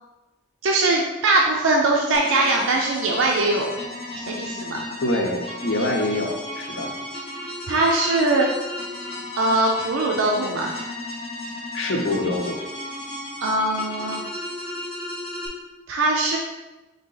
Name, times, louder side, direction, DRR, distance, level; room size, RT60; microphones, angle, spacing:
voice 1, 0.6-3.7 4.2-4.9 7.7-8.5 9.4-10.7 13.4-14.2 15.9-16.4, right 2 dB, 80° right, 0 dB, 0.5 m, -21 dB
sound 1, 2.1-15.5, left 1 dB, 30° left, 0.9 m, -34 dB
voice 2, 5.0-7.0 11.7-12.6, left 1 dB, 65° left, 2 dB, 0.7 m, -25 dB
4.1 x 2.8 x 3.9 m, 1.1 s
head